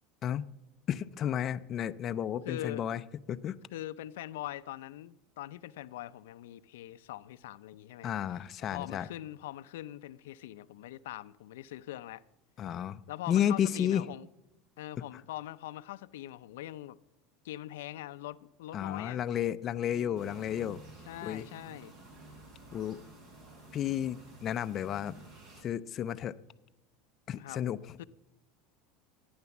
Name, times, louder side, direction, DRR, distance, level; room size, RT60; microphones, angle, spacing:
voice 1, 0.9-3.0 3.3-3.6 8.0-9.1 12.6-14.0 15.0-15.1 18.7-20.8 21.2-21.4 22.7-23.0 23.7-25.1 25.6-26.4 27.3-28.0, left 10 dB, 35° left, 0.5 m, -32 dB
voice 2, 2.4-2.8 3.7-8.1 8.7-12.2 13.1-14.3 14.8-17.0 17.4-19.2 19.9-20.2 21.1-21.9 27.4-27.6 28.0-28.1, left 14 dB, 90° left, 0.5 m, -42 dB
sound 1, 20.1-25.6, right 2 dB, 50° right, 4.2 m, -52 dB
14.5 x 9.6 x 7.1 m
supercardioid pair, 130°, 0 cm